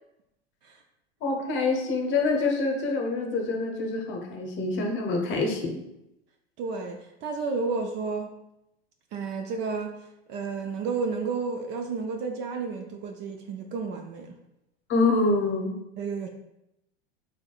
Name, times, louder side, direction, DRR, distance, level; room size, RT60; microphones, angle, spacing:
voice 1, 1.2-5.8 14.9-15.8, left 3 dB, 35° left, 2 dB, 0.8 m, -26 dB
voice 2, 6.6-8.4 9.1-14.3 16.0-16.3, right 4 dB, 35° right, 4 dB, 0.4 m, -32 dB
4.7 x 3.4 x 2.3 m, 0.87 s
hypercardioid pair, 95°, 33 cm